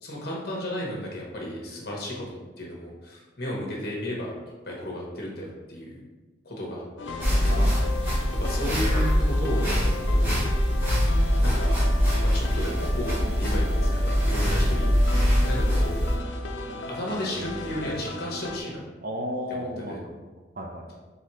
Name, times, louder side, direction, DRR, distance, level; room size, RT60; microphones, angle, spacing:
voice 1, 0.0-4.3 4.6-6.0 6.4-7.8 8.3-10.4 11.4-11.8 12.2-14.9 15.4-15.9 16.9-18.8 19.5-20.0, left 1 dB, 55° left, -2 dB, 1.2 m, -34 dB
sound 1, 7.0-18.6, left 2 dB, 80° left, 0.5 m, -36 dB
sound 2, 7.2-16.2, equal, 10° right, 1.3 m, -23 dB
voice 2, 14.5-14.9 19.0-20.3 20.6-21.0, equal, 55° right, 2 dB, 0.6 m, -34 dB
4.1 x 4.0 x 3.1 m, 1.2 s
head